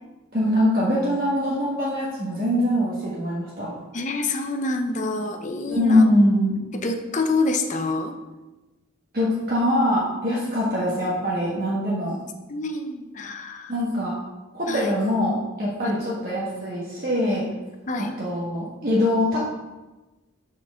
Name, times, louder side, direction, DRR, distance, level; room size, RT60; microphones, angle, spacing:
voice 1, 0.3-3.7 5.7-6.6 9.1-12.1 13.7-14.2 14.5-17.5 18.0-19.4, left 1 dB, 45° right, -7 dB, 1.5 m, -23 dB
voice 2, 3.9-6.1 6.7-8.1 10.4-10.5 12.5-13.7 14.7-14.9 15.8-16.1 17.9-18.1, left 2 dB, 35° left, 6 dB, 0.6 m, -27 dB
5.9 x 4.6 x 6.2 m, 1.1 s
head